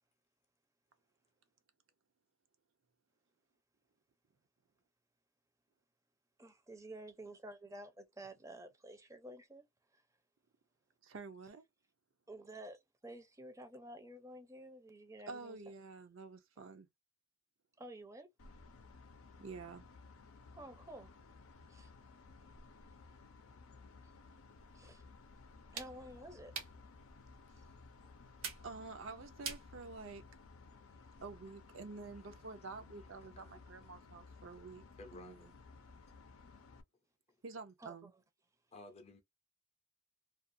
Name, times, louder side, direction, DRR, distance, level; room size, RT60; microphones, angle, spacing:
voice 1, 6.4-9.6 12.3-15.6 17.8-18.3 20.5-21.2 21.7-21.9 24.7-25.0 25.7-26.5 27.6-27.7 37.8-38.0, right 1 dB, 15° right, 0.5 m, -51 dB
voice 2, 11.0-11.6 15.3-16.9 19.4-19.8 28.6-30.2 31.2-34.8 35.1-35.5 37.4-38.1, right 4 dB, 65° right, 0.5 m, -49 dB
sound 1, 18.4-36.8, left 4 dB, 85° left, 0.5 m, -58 dB
sound 2, 24.6-30.5, right 5 dB, 85° right, 1.1 m, -50 dB
voice 3, 32.8-33.1 33.4-33.6 35.0-35.5 38.7-39.2, left 2 dB, 30° left, 0.5 m, -55 dB
2.4 x 2.3 x 2.5 m
head